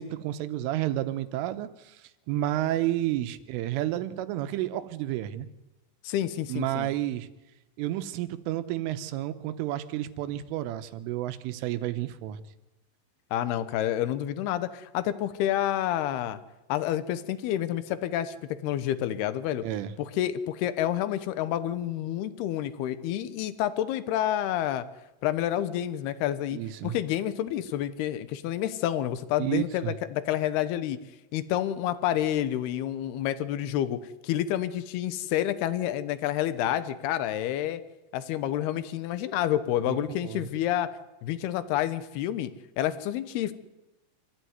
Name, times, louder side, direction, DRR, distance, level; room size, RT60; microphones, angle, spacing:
voice 1, 0.0-2.0 2.3-5.5 6.5-7.3 7.8-12.4 19.6-19.9 26.5-27.0 29.4-29.9 39.9-40.5, right 13 dB, 90° right, 11 dB, 3.6 m, -31 dB
voice 2, 6.0-6.9 13.3-16.4 16.7-18.4 18.6-19.7 20.0-24.8 25.2-31.0 31.3-37.8 38.1-40.9 41.2-42.5 42.8-43.6, left 12 dB, 70° left, 13 dB, 2.6 m, -29 dB
26.0 x 15.0 x 9.5 m, 0.99 s
omnidirectional pair, 5.6 m